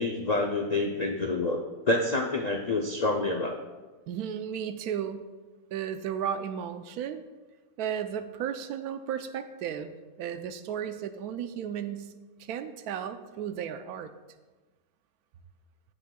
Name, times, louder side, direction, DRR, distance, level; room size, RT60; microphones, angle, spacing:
voice 1, 0.0-1.6 1.9-3.6, left 2 dB, 85° left, 1 dB, 0.3 m, -27 dB
voice 2, 4.1-5.2 5.7-7.2 7.8-9.9 10.2-12.1 12.4-14.1, right 8 dB, 90° right, 10 dB, 1.1 m, -34 dB
16.5 x 6.5 x 2.3 m, 1.2 s
omnidirectional pair, 1.6 m